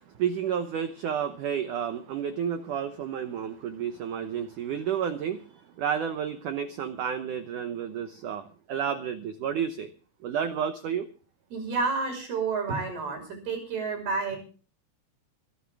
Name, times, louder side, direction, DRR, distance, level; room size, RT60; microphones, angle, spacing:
voice 1, 0.0-5.5 5.8-9.9 10.2-11.1, right 8 dB, 90° right, 8 dB, 1.7 m, -31 dB
voice 2, 11.5-14.4, right 4 dB, 60° right, 4 dB, 7.4 m, -30 dB
25.0 x 11.5 x 3.5 m, 0.38 s
omnidirectional pair, 5.1 m